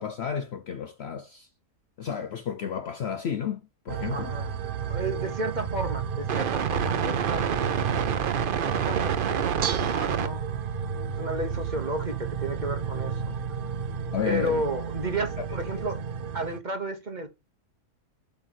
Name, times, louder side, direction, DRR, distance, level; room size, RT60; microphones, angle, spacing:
voice 1, 0.0-1.5 2.0-4.3 14.1-14.6 15.4-15.5 15.7-15.8, left 8 dB, 60° left, 0.7 m, -32 dB
sound 1, 3.9-16.6, right 7 dB, 55° right, 0.6 m, -29 dB
voice 2, 4.1-4.5 4.9-7.8 8.5-10.5 11.2-13.4 14.2-16.0 16.3-17.3, right 2 dB, 35° right, 1.0 m, -33 dB
Bell / Dishes pots and pans, 9.2-15.9, right 6 dB, 90° right, 1.4 m, -40 dB
7.8 x 3.4 x 6.3 m
omnidirectional pair, 1.6 m